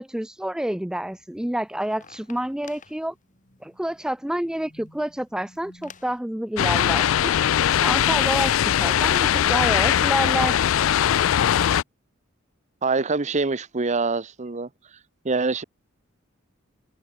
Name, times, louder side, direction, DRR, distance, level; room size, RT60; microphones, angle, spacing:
voice 1, 0.0-3.1 3.6-7.3 7.8-10.6, right 1 dB, 5° right, 0.3 m, -28 dB
sound 1, 1.1-6.2, left 4 dB, 40° left, 6.9 m, -51 dB
sound 2, 6.6-11.8, left 10 dB, 75° left, 0.4 m, -20 dB
voice 2, 12.8-14.7 15.2-15.6, right 3 dB, 35° right, 0.9 m, -24 dB
head